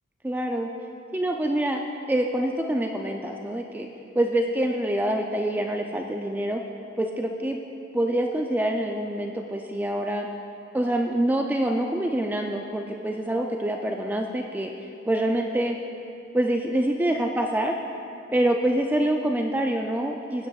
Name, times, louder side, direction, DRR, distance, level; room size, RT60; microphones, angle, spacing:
voice 1, 0.2-0.7 1.1-1.8 2.1-3.9 4.2-6.6 7.0-7.6 7.9-10.3 10.7-14.7 15.1-15.8 16.3-17.7 18.3-20.5, right 1 dB, 10° right, 2 dB, 0.3 m, -25 dB
15.0 x 9.2 x 2.3 m, 2.6 s
head